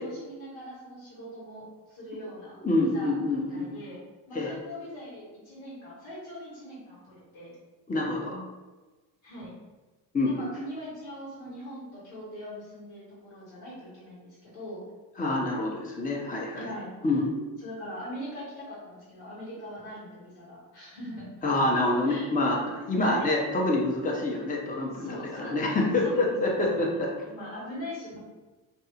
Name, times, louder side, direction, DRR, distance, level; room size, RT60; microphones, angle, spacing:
voice 1, 0.0-3.1 3.5-4.0 4.3-7.5 9.2-9.5 10.2-14.8 16.5-16.9 17.6-21.3 21.8-22.3 23.0-23.3 24.9-25.6 26.0-26.4 26.7-28.2, equal, 85° left, -7 dB, 1.3 m, -41 dB
voice 2, 2.6-3.7 4.3-4.5 7.9-8.4 10.1-10.5 15.2-16.7 17.0-17.3 21.4-27.1, left 2 dB, 15° left, -1 dB, 0.6 m, -27 dB
2.6 x 2.3 x 2.7 m, 1.2 s
supercardioid pair, 55°, 48 cm